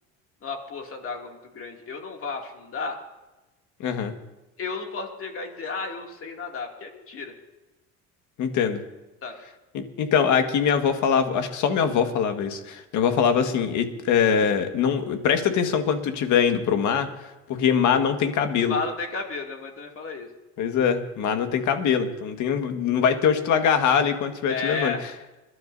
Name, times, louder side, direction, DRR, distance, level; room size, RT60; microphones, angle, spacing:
voice 1, 0.4-3.0 4.6-7.3 9.2-9.4 18.7-20.3 24.5-25.0, left 4 dB, 40° left, 2 dB, 2.6 m, -33 dB
voice 2, 3.8-4.1 8.4-8.8 9.7-17.1 17.5-18.8 20.6-24.9, left 7 dB, 65° left, 7 dB, 1.7 m, -23 dB
26.5 x 12.0 x 2.7 m, 1.1 s
supercardioid pair, 100°, 33 cm